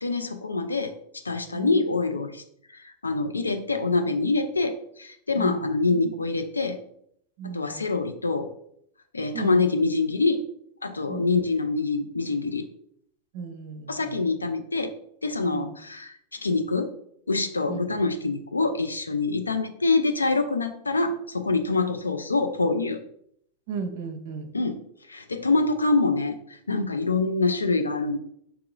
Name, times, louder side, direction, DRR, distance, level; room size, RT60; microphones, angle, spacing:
voice 1, 0.0-0.9 1.2-2.4 2.7-6.8 7.4-8.5 9.1-10.4 10.8-12.6 13.9-14.9 15.2-16.9 17.3-23.0 24.5-24.8 25.1-26.4 26.7-28.2, left 3 dB, 80° left, 7 dB, 0.4 m, -25 dB
voice 2, 7.4-7.9 9.3-9.7 11.1-11.3 13.3-14.2 15.5-15.7 17.7-17.8 21.7-21.9 23.7-24.5, right 5 dB, 50° right, 8 dB, 0.5 m, -35 dB
4.7 x 3.7 x 2.3 m, 0.70 s
figure-of-eight pair, 90°, 0 cm